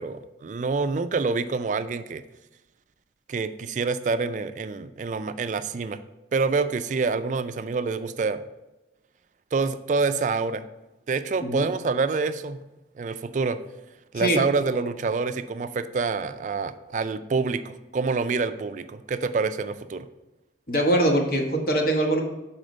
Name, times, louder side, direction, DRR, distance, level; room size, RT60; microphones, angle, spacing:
voice 1, 0.0-2.2 3.3-6.0 6.3-8.4 9.5-10.7 11.1-12.6 13.0-13.6 14.1-20.1, right 4 dB, 45° right, 12 dB, 0.3 m, -27 dB
voice 2, 20.7-22.2, right 1 dB, 50° left, 2 dB, 1.1 m, -22 dB
6.3 x 4.3 x 5.2 m, 1.0 s
head